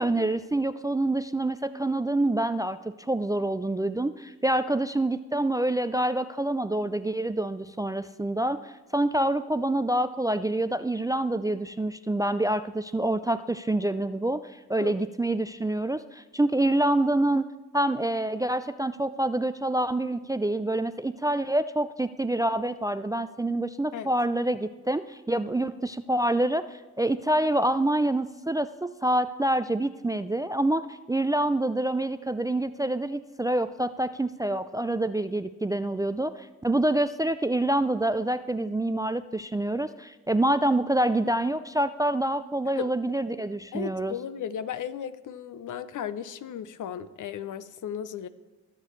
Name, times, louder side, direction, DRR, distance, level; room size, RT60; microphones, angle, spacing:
voice 1, 0.0-17.4 17.7-44.1, right 1 dB, 10° right, 13 dB, 0.3 m, -27 dB
voice 2, 43.7-48.3, left 8 dB, 65° left, 14 dB, 0.7 m, -35 dB
18.5 x 6.7 x 3.2 m, 1.2 s
supercardioid pair, 50°, 34 cm